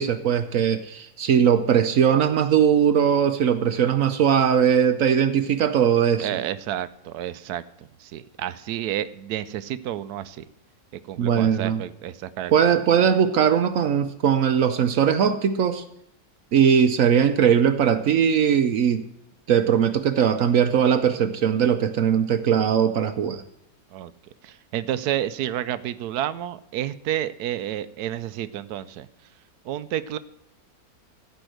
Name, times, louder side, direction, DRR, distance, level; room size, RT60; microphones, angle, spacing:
voice 1, 0.0-6.3 11.2-11.8 12.5-15.8 16.5-19.0 19.5-23.4, right 8 dB, 65° right, 10 dB, 1.0 m, -20 dB
voice 2, 6.2-10.4 10.9-12.5 23.9-24.1 24.4-29.1 29.6-30.2, right 11 dB, 90° right, 14 dB, 1.2 m, -30 dB
15.0 x 5.3 x 7.8 m, 0.81 s
omnidirectional pair, 1.6 m